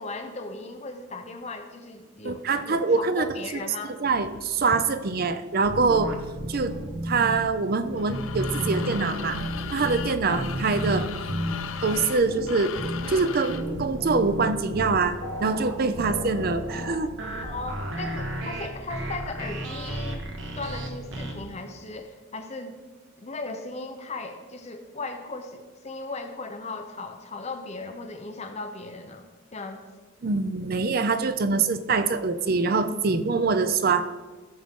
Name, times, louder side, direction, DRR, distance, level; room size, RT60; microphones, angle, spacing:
voice 1, 0.0-4.0 10.3-10.4 17.4-20.2 20.6-22.8 23.2-29.8, left 3 dB, 35° left, 5 dB, 0.8 m, -37 dB
voice 2, 2.2-3.3 4.0-6.1 6.5-6.8 7.0-9.4 9.7-11.1 11.8-12.7 13.1-17.1 30.2-34.0, right 4 dB, 50° right, 11 dB, 0.5 m, -24 dB
sound 1, 5.6-7.4 7.8-21.3, equal, 65° right, 1.2 m, -32 dB
sound 2, 8.0-13.7, left 8 dB, 90° left, 0.6 m, -37 dB
14.5 x 6.2 x 3.7 m, 1.3 s
head